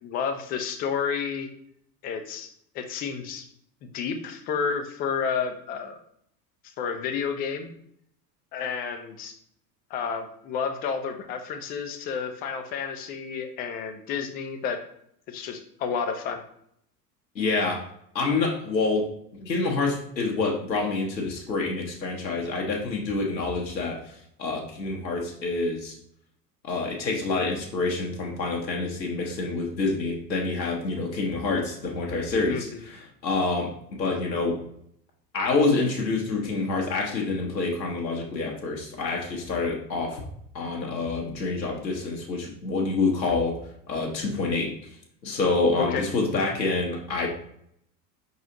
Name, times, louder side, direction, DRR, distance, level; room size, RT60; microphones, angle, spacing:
voice 1, 0.0-1.5 2.0-2.5 2.7-3.4 3.9-6.0 6.8-7.7 8.5-9.4 9.9-14.8 15.3-16.4 32.5-32.8 45.8-46.0, left 6 dB, 20° left, 7 dB, 0.3 m, -30 dB
voice 2, 17.3-17.8 18.1-19.1 19.3-26.0 26.6-34.6 35.3-40.2 40.5-43.6 43.9-44.7 45.2-47.3, left 3 dB, 85° left, -1 dB, 0.9 m, -27 dB
4.8 x 3.9 x 2.8 m, 0.70 s
figure-of-eight pair, 75°, 50 cm